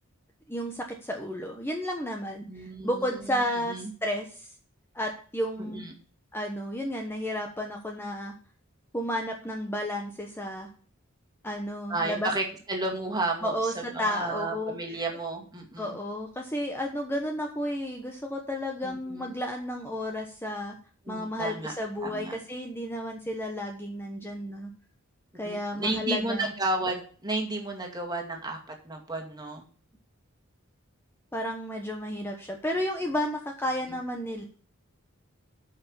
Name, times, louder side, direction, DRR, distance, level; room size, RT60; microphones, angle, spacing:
voice 1, 0.5-4.5 4.9-5.8 6.3-8.3 8.9-10.7 11.4-12.3 13.4-15.0 15.8-20.8 21.1-24.7 25.3-26.5 31.3-34.4, equal, 10° left, 2 dB, 1.1 m, -32 dB
voice 2, 2.5-3.9 5.6-5.9 11.9-16.0 18.8-19.4 21.1-21.7 22.0-22.3 25.4-29.6, right 2 dB, 20° right, 1 dB, 2.2 m, -33 dB
8.8 x 5.8 x 7.0 m, 0.42 s
head